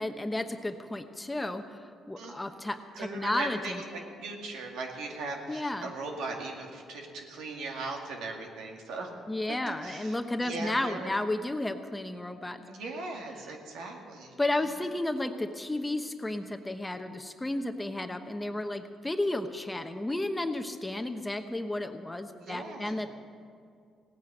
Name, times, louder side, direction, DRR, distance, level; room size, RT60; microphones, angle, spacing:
voice 1, 0.0-1.8 2.1-3.8 5.5-5.9 9.3-12.6 14.4-23.1, left 1 dB, 15° left, 7 dB, 1.0 m, -32 dB
voice 2, 2.9-9.1 9.5-11.1 12.7-14.3 22.4-23.0, right 3 dB, 85° right, 1 dB, 2.2 m, -39 dB
17.0 x 9.3 x 7.9 m, 2.2 s
cardioid pair, 90°, 0 cm